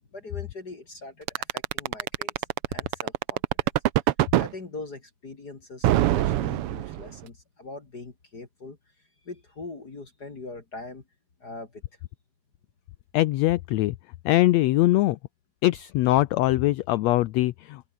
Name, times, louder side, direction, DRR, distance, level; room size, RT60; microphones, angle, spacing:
voice 1, 0.1-3.7 4.3-11.0 11.4-11.8, left 3 dB, 30° left, 3.0 m, -42 dB
sound 1, 1.3-4.5 5.8-7.2, right 14 dB, 75° right, 1.3 m, -23 dB
voice 2, 13.1-13.9 14.2-15.2 15.6-17.8, left 17 dB, 75° left, 1.7 m, -22 dB
omnidirectional pair, 3.5 m